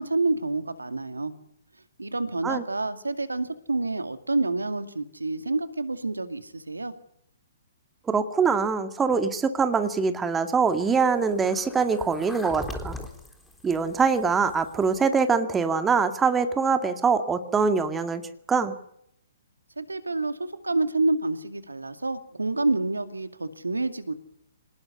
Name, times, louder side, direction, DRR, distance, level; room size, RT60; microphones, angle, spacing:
voice 1, 0.0-1.3 2.0-6.9 19.8-24.1, right 2 dB, 80° right, 9 dB, 2.3 m, -28 dB
voice 2, 8.1-13.0 13.6-18.2 18.5-18.7, right 5 dB, 10° right, 8 dB, 2.1 m, -23 dB
sound 1, 10.6-15.1, left 1 dB, 5° left, 3.6 m, -41 dB
26.5 x 19.0 x 9.8 m, 0.74 s
figure-of-eight pair, 125°, 0 cm